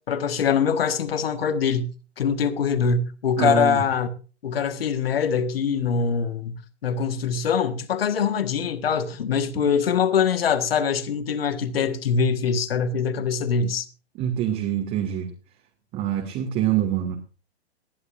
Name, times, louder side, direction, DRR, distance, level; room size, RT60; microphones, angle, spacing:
voice 1, 0.0-4.1 4.4-6.5 6.8-13.9, left 6 dB, 60° left, 1.7 m, -23 dB
voice 2, 3.4-3.8 14.2-15.3 15.9-17.2, right 10 dB, 25° right, 2.3 m, -25 dB
19.5 x 11.5 x 2.6 m
figure-of-eight pair, 125°, 33 cm